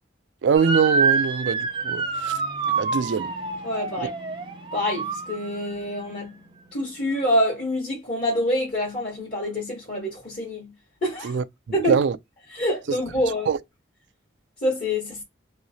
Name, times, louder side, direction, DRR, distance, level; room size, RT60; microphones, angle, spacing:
voice 1, 0.4-2.3 2.8-3.3 11.2-11.4 11.9-12.2 13.5-13.6, right 6 dB, 70° right, 0.3 m, -22 dB
Motor vehicle (road) / Siren, 0.5-5.8, right 4 dB, 25° right, 0.6 m, -27 dB
voice 2, 3.6-4.1 4.7-6.4 6.7-10.7 11.0-11.3 11.7-12.0 12.5-13.5 14.6-15.2, left 1 dB, 40° left, 1.1 m, -26 dB
3.0 x 2.8 x 2.7 m
head